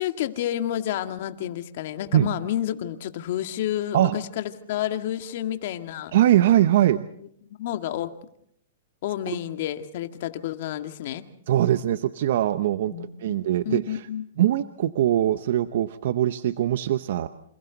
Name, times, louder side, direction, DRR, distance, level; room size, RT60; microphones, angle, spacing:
voice 1, 0.0-6.1 7.6-8.1 9.0-11.2 12.9-14.3, left 12 dB, 60° left, 8 dB, 2.0 m, -30 dB
voice 2, 6.1-7.1 11.5-14.1 14.4-17.3, right 12 dB, 65° right, 12 dB, 0.9 m, -22 dB
28.5 x 27.5 x 4.1 m, 0.68 s
hypercardioid pair, 130°, 0 cm